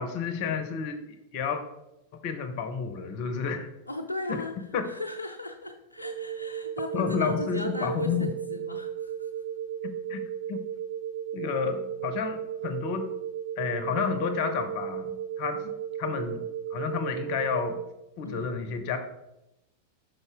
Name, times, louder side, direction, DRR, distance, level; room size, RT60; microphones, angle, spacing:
voice 1, 0.0-1.6 2.1-3.7 4.3-4.4 4.7-4.9 6.9-8.3 9.8-10.7 11.3-13.1 13.6-17.9 18.2-19.0, left 6 dB, 45° left, 8 dB, 0.8 m, -31 dB
voice 2, 3.9-4.5 4.9-9.1 18.2-18.5, left 1 dB, 85° left, 4 dB, 0.5 m, -37 dB
sound 1, 6.0-17.8, right 9 dB, 70° right, 0.4 m, -35 dB
5.5 x 5.2 x 3.6 m, 0.92 s
figure-of-eight pair, 90°, 0 cm